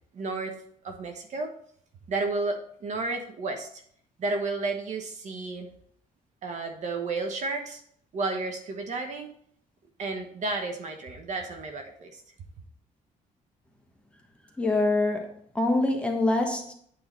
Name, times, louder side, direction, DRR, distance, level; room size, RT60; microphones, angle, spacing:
voice 1, 0.1-0.6 0.8-1.5 2.1-3.7 4.2-5.7 6.4-7.8 8.1-9.3 10.0-12.2, right 3 dB, 55° right, 4 dB, 1.3 m, -32 dB
voice 2, 14.6-15.3 15.5-16.7, left 2 dB, 10° left, 1 dB, 1.3 m, -24 dB
8.7 x 3.8 x 5.5 m, 0.63 s
cardioid pair, 110°, 15 cm